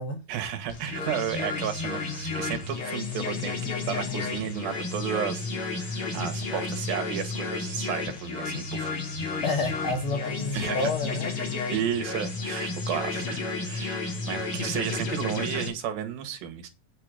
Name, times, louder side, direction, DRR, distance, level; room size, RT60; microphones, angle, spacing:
voice 1, 0.3-8.9 10.5-10.9 11.7-16.7, right 9 dB, 80° right, 7 dB, 3.4 m, -33 dB
sound 1, 0.7-15.7, left 4 dB, 40° left, 3.5 m, -32 dB
voice 2, 9.4-11.5, left 2 dB, 65° left, 5 dB, 1.4 m, -29 dB
9.1 x 7.6 x 5.1 m, 0.28 s
omnidirectional pair, 4.1 m